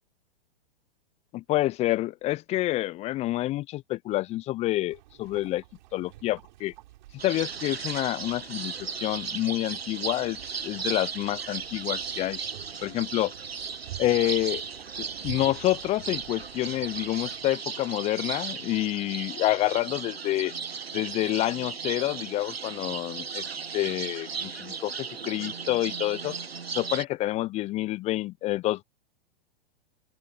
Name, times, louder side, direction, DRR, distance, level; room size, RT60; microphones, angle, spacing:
voice 1, 1.3-5.6 5.9-6.7 7.2-10.4 10.6-12.4 12.8-13.3 14.0-14.6 15.0-20.5 20.9-23.4 23.7-26.4 26.7-28.8, left 16 dB, 20° left, 0.7 m, -28 dB
sound 1, 4.9-17.5, right 16 dB, 50° right, 6.4 m, -49 dB
sound 2, 7.2-27.0, right 6 dB, 85° right, 1.5 m, -36 dB
open air
figure-of-eight pair, 115°, 30 cm